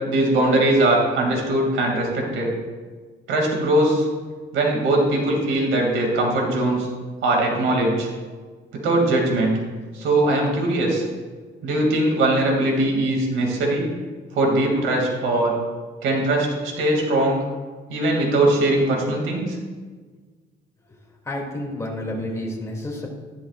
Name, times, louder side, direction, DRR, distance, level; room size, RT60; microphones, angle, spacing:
voice 1, 0.1-2.6 3.3-4.1 4.5-6.9 7.2-8.1 8.7-9.5 9.9-11.0 11.6-13.8 14.3-15.5 16.0-17.4 17.9-19.6, right 1 dB, 90° right, 0 dB, 2.5 m, -20 dB
voice 2, 21.3-23.1, left 1 dB, 15° left, -2 dB, 2.6 m, -30 dB
13.0 x 11.5 x 2.5 m, 1.4 s
cardioid pair, 90°, 20 cm